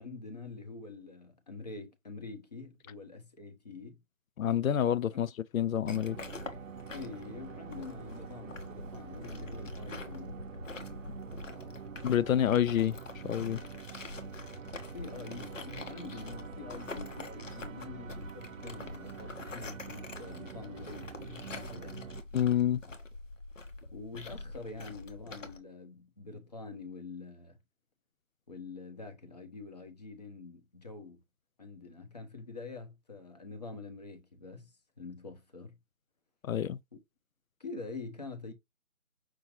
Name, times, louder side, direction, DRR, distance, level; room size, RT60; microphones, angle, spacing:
voice 1, 0.0-4.0 6.9-10.4 11.4-11.8 14.9-22.1 22.8-22.9 23.9-27.6 28.5-31.2 31.6-35.8 36.9-37.0 37.6-38.5, left 3 dB, 30° left, 1.0 m, -46 dB
voice 2, 4.4-6.2 12.0-13.0 13.2-13.6 22.3-22.8 36.4-36.8, left 10 dB, 90° left, 0.5 m, -28 dB
sound 1, 5.9-25.6, left 3 dB, 70° left, 1.3 m, -45 dB
sound 2, 5.9-22.2, right 8 dB, 75° right, 0.6 m, -46 dB
6.1 x 2.8 x 3.1 m
figure-of-eight pair, 170°, 40 cm